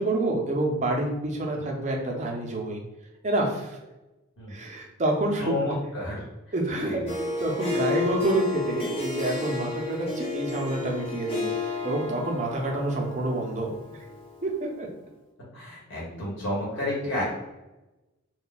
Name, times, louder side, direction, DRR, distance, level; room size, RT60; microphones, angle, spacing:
voice 1, 0.0-2.8 3.2-3.8 4.5-5.6 6.5-7.0 7.4-13.7 14.4-14.5 14.8-14.9, right 2 dB, 35° right, 0 dB, 0.5 m, -28 dB
voice 2, 5.4-6.2 6.7-7.2 15.5-17.2, left 1 dB, 60° left, -5 dB, 1.1 m, -31 dB
Harp, 7.1-14.6, left 3 dB, 25° left, 0.6 m, -32 dB
2.2 x 2.2 x 3.9 m, 1.0 s
head